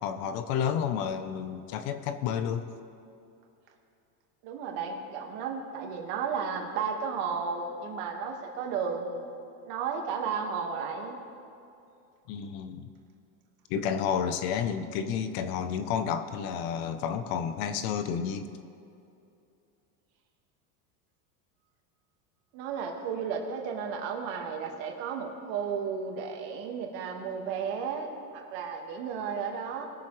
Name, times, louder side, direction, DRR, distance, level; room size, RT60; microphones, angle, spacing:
voice 1, 0.0-2.7 12.3-12.9 13.7-18.6, left 7 dB, 55° left, 10 dB, 0.9 m, -31 dB
voice 2, 4.4-9.3 9.7-11.2 22.5-29.9, right 6 dB, 65° right, 2 dB, 2.0 m, -33 dB
20.5 x 7.3 x 3.3 m, 2.6 s
supercardioid pair, 125°, 44 cm